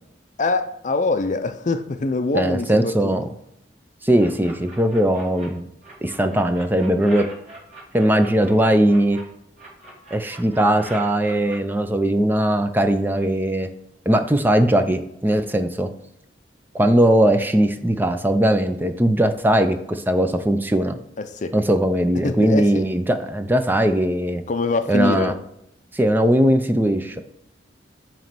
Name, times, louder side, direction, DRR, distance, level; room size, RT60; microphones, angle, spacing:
voice 1, 0.4-3.1 21.2-21.5 22.2-22.9 24.5-25.4, left 3 dB, 45° left, 0.5 m, -24 dB
voice 2, 2.3-3.2 4.0-5.6 6.0-7.2 7.9-9.2 10.1-13.7 14.1-15.9 16.7-21.0 21.5-24.4 24.9-25.3 25.9-27.2, right 1 dB, 10° right, 0.4 m, -19 dB
sound 1, 4.2-5.5 5.8-9.2 9.6-11.6, right 2 dB, 40° right, 2.2 m, -41 dB
9.0 x 3.1 x 5.9 m
head